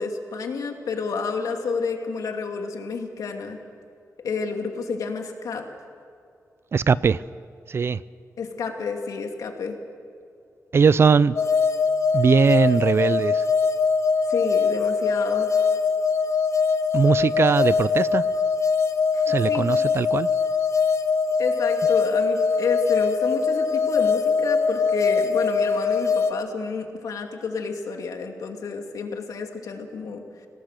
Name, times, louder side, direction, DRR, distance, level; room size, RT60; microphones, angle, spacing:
voice 1, 0.0-3.6 4.2-5.6 8.4-9.8 14.3-15.5 19.1-19.8 21.4-30.2, left 4 dB, 85° left, 2.6 m, -30 dB
voice 2, 6.7-7.2 7.7-8.0 10.7-11.3 12.1-13.4 16.9-18.2 19.3-20.3, right 5 dB, 45° right, 0.5 m, -20 dB
sound 1, 11.4-26.3, left 5 dB, 55° left, 1.1 m, -22 dB
26.5 x 18.0 x 6.7 m
wide cardioid pair, 135°, 6 cm